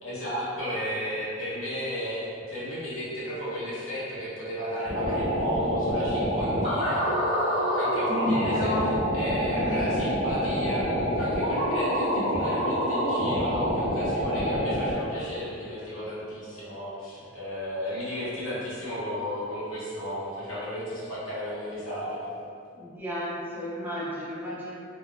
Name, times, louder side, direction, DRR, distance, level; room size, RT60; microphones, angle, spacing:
voice 1, 0.0-22.2, equal, 85° left, -9 dB, 0.9 m, -34 dB
sound 1, 4.8-14.9, equal, 45° left, 1.0 m, -26 dB
voice 2, 8.1-8.9 9.5-10.0 22.7-24.7, left 1 dB, 10° right, -8 dB, 0.4 m, -32 dB
3.0 x 2.0 x 2.4 m, 2.5 s
head